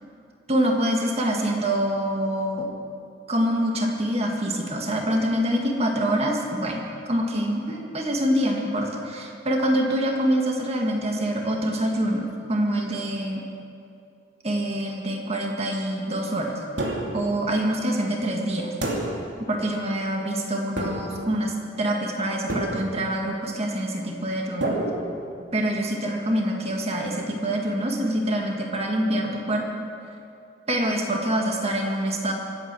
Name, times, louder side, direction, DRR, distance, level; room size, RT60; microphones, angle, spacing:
voice 1, 0.5-2.7 3.3-13.4 14.4-16.6 17.1-18.7 19.4-24.8 25.5-29.7 30.7-32.3, right 1 dB, 35° right, 0 dB, 2.0 m, -25 dB
sound 1, 16.8-17.3 18.8-19.4 20.8-21.3 22.5-23.1 24.6-25.6, right 1 dB, 80° right, 2.7 m, -29 dB
25.0 x 8.9 x 6.3 m, 2.4 s
head